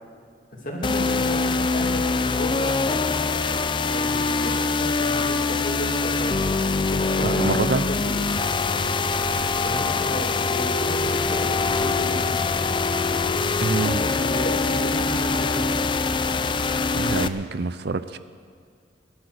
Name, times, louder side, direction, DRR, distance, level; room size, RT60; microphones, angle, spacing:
voice 1, 0.5-3.0 3.9-8.2 9.6-12.5 13.9-15.9, equal, 45° left, -1 dB, 2.9 m, -33 dB
sound 1, 0.8-17.3, left 4 dB, 25° left, 0.4 m, -23 dB
voice 2, 7.2-7.9 13.6-14.0 17.0-18.2, right 4 dB, 60° right, 13 dB, 0.5 m, -26 dB
18.5 x 12.0 x 6.5 m, 2.2 s
head